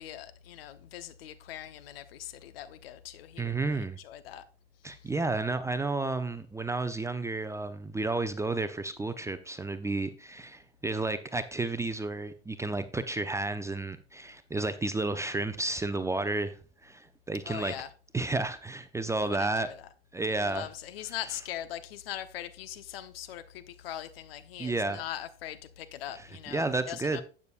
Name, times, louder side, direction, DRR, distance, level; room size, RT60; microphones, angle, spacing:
voice 1, 0.0-4.4 4.9-5.1 17.4-17.9 19.2-19.8 20.4-27.2, left 11 dB, 70° left, 0.9 m, -41 dB
voice 2, 3.4-4.0 4.8-17.7 18.1-19.7 20.1-20.7 24.6-25.0 26.2-27.2, right 3 dB, 10° right, 0.7 m, -32 dB
12.0 x 8.5 x 2.5 m
hypercardioid pair, 90°, 31 cm